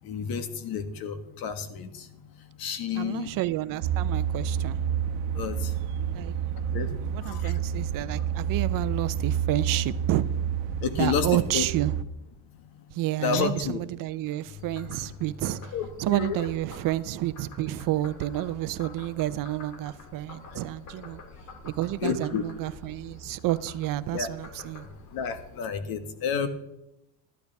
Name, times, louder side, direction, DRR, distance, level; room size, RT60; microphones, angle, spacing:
voice 1, 0.0-2.1 2.6-3.3 5.3-5.7 6.7-7.5 10.8-11.7 13.2-13.8 15.7-16.4 20.5-20.6 22.0-22.4 24.1-24.3 25.1-26.5, left 6 dB, 60° left, 1.7 m, -30 dB
voice 2, 3.0-4.8 6.1-6.3 7.0-10.2 11.0-11.9 12.9-15.7 16.0-21.2 21.6-24.9, right 15 dB, 55° right, 0.6 m, -30 dB
sound 1, 3.8-12.0, right 8 dB, 85° right, 1.0 m, -29 dB
Frog, 14.5-25.6, left 3 dB, 45° left, 2.2 m, -46 dB
13.5 x 11.5 x 3.5 m
cardioid pair, 115°, 40 cm